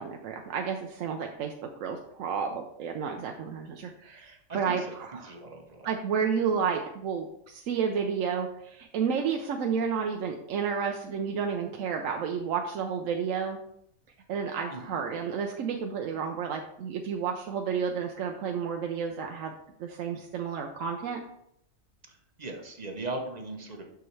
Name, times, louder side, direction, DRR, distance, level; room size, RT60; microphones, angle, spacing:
voice 1, 0.0-5.3 5.8-13.6 14.3-19.5 19.8-21.2, right 6 dB, 75° right, 3 dB, 1.0 m, -31 dB
voice 2, 4.5-5.0 5.2-5.9 14.7-15.0 22.1-23.8, right 2 dB, 35° right, 3 dB, 0.9 m, -39 dB
6.9 x 6.2 x 3.2 m, 0.75 s
omnidirectional pair, 1.4 m